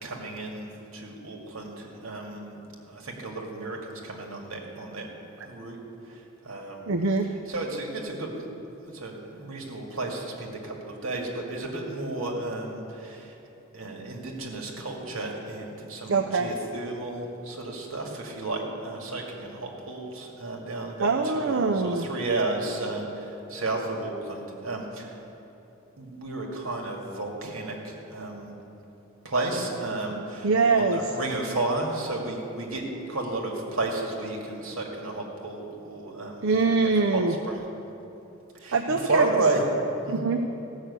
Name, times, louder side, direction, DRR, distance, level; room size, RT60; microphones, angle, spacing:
voice 1, 0.0-2.6 2.9-5.1 5.4-5.8 6.1-6.2 6.4-6.9 7.5-8.3 8.9-13.3 13.7-25.1 26.0-28.5 29.2-32.8 33.1-36.7 37.1-37.7 38.6-39.7 40.0-40.2, right 2 dB, 85° right, 0 dB, 2.1 m, -32 dB
voice 2, 6.9-7.3 16.1-16.5 21.0-22.1 30.4-31.0 36.4-37.4 38.7-39.3 40.1-40.4, right 4 dB, 70° right, 4 dB, 0.6 m, -23 dB
15.5 x 6.5 x 8.2 m, 3.0 s
head